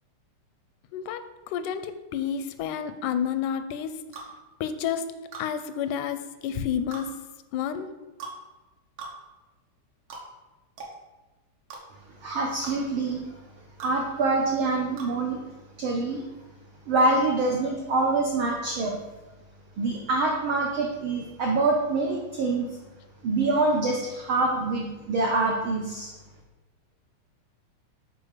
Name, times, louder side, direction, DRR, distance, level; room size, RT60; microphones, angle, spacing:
voice 1, 0.9-3.9 4.6-5.1 5.4-7.1 7.5-7.9, left 8 dB, 90° left, 11 dB, 2.0 m, -30 dB
sound 1, 4.1-4.3 5.3-5.5 6.9-7.1 8.2-8.4 9.0-9.1 10.1-10.3 10.8-10.9 11.7-11.8 12.6-12.8 13.8-14.0 15.0-15.1, right 4 dB, 55° right, 2.0 m, -39 dB
voice 2, 12.2-13.3 13.8-15.4 15.8-16.3 16.9-18.9 19.8-22.8 23.2-26.1, right 3 dB, 80° right, 0 dB, 1.1 m, -25 dB
6.7 x 4.0 x 6.6 m, 1.1 s
omnidirectional pair, 3.5 m